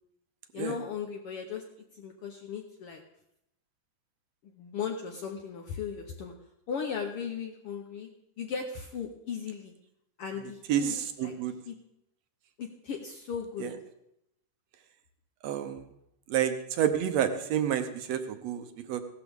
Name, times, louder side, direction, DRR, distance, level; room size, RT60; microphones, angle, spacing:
voice 1, 0.5-1.6 2.0-3.0 4.4-6.3 6.7-8.1 8.4-9.7 10.2-10.9 11.2-11.3 11.7-11.8 12.6-13.7, left 6 dB, 75° left, 2 dB, 1.3 m, -37 dB
voice 2, 10.7-11.6 13.6-13.7 15.4-15.9 16.3-19.0, right 9 dB, 70° right, 8 dB, 1.7 m, -29 dB
17.0 x 12.5 x 3.5 m, 0.81 s
omnidirectional pair, 3.7 m